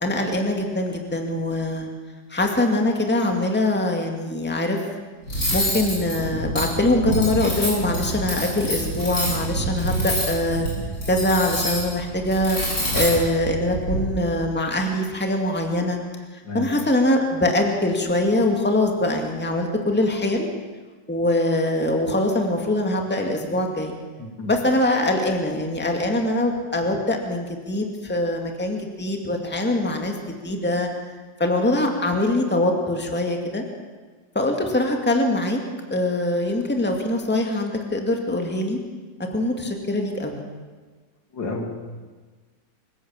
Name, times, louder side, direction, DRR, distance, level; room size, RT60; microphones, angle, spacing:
voice 1, 0.0-1.9 2.3-4.9 5.5-10.7 11.1-12.6 12.9-16.0 16.5-20.5 21.1-23.9 24.4-30.1 30.4-30.9 31.4-33.6 34.3-35.6 35.9-38.8 39.3-40.4, left 1 dB, 5° left, 2 dB, 2.2 m, -23 dB
Cutlery silverware, 5.3-14.0, equal, 50° left, 8.7 m, -26 dB
voice 2, 24.2-24.5 41.3-41.7, left 3 dB, 70° left, 1 dB, 3.6 m, -30 dB
25.5 x 16.0 x 7.3 m, 1.4 s
omnidirectional pair, 2.0 m